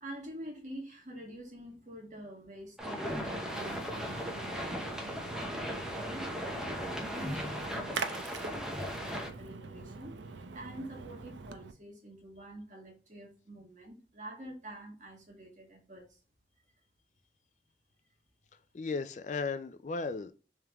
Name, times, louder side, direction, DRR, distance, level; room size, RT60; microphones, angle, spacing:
voice 1, 0.0-5.0 5.4-10.3 10.5-16.2, right 1 dB, 45° right, 1.5 m, -47 dB
sound 1, 2.8-9.3, equal, 5° right, 0.6 m, -37 dB
Splash splatter, 3.0-11.7, right 4 dB, 90° right, 0.5 m, -44 dB
voice 2, 18.7-20.3, left 4 dB, 40° left, 0.3 m, -35 dB
3.6 x 3.4 x 2.9 m
head